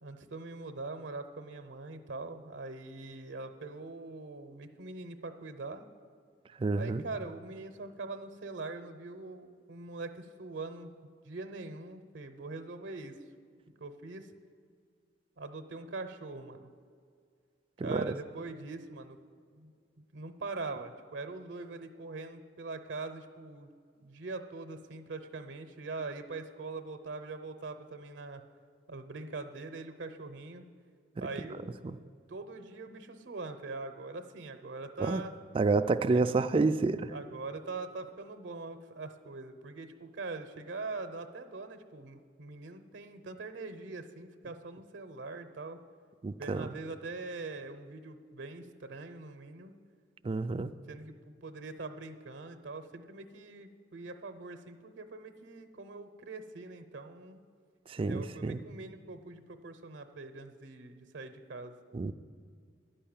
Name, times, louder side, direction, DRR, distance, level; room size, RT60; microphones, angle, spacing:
voice 1, 0.0-5.9 6.7-10.9 11.2-13.2 13.8-14.3 15.4-16.7 17.8-19.2 19.5-19.7 20.1-23.7 24.0-28.4 28.9-30.7 31.2-31.6 32.3-35.3 36.1-36.2 37.1-45.8 46.4-49.7 50.9-57.4 58.0-61.7, right 3 dB, 75° right, 8 dB, 0.7 m, -42 dB
voice 2, 6.6-7.0 17.8-18.1 31.2-31.3 31.8-32.0 35.0-35.2 35.5-37.1 46.2-46.7 50.2-50.7 57.9-58.6 61.9-62.1, right 3 dB, 30° right, 10 dB, 0.3 m, -29 dB
11.0 x 5.5 x 8.7 m, 2.1 s
head